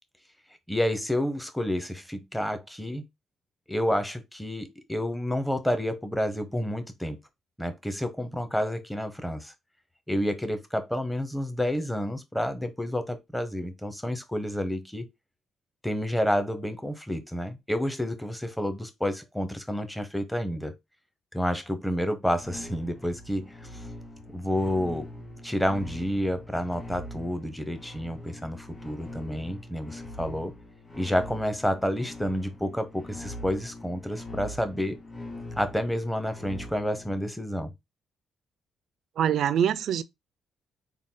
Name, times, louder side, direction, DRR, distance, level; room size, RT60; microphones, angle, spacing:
voice 1, 0.7-3.0 3.7-7.2 7.6-9.5 10.1-15.0 15.8-20.7 21.3-23.9 24.3-25.1 25.4-30.5 30.9-35.0 35.6-37.7, equal, 5° left, 0.7 m, -29 dB
sound 1, 22.4-37.2, left 1 dB, 35° left, 2.0 m, -43 dB
voice 2, 39.2-40.0, right 9 dB, 70° right, 0.4 m, -24 dB
3.7 x 2.2 x 3.7 m
cardioid pair, 90°, 0 cm